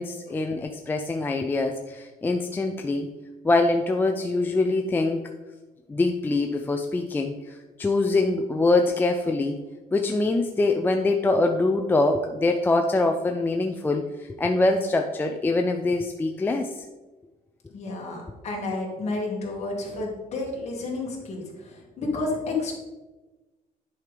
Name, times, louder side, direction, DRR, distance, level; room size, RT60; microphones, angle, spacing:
voice 1, 0.0-3.1 3.4-5.2 5.9-9.6 9.9-16.8, left 2 dB, 15° left, 3 dB, 0.3 m, -24 dB
voice 2, 17.7-22.7, left 3 dB, 45° left, -2 dB, 2.0 m, -31 dB
9.6 x 5.1 x 3.2 m, 1.2 s
cardioid pair, 160°, 15 cm